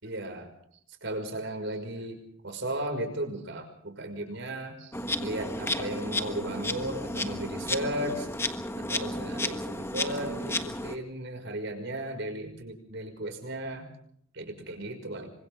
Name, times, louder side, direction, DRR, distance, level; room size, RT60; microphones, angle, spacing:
voice 1, 0.0-0.5 1.0-8.3 8.7-13.9 14.3-15.3, right 1 dB, 60° right, 6 dB, 5.7 m, -35 dB
Insect, 4.9-11.0, left 1 dB, 10° left, 1.5 m, -32 dB
28.5 x 25.0 x 3.7 m, 0.64 s
head